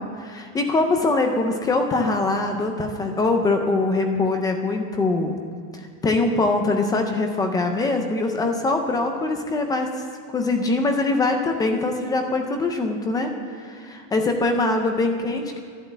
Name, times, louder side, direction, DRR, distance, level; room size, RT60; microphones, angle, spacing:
voice 1, 0.0-5.3 6.0-10.0 10.3-13.3 13.6-15.6, left 2 dB, 10° left, 5 dB, 0.3 m, -23 dB
12.0 x 11.5 x 8.0 m, 2.2 s
supercardioid pair, 155°, 47 cm